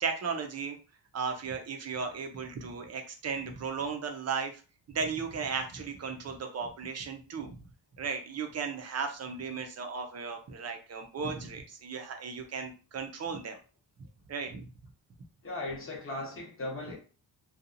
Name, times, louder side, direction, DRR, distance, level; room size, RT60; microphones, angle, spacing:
voice 1, 0.0-0.8 1.1-4.5 4.9-7.6 7.9-13.6 14.0-14.7, right 5 dB, 40° right, 0.5 m, -35 dB
voice 2, 15.4-17.0, left 2 dB, 30° left, 0.9 m, -37 dB
2.8 x 2.3 x 2.5 m
wide cardioid pair, 140°, 43 cm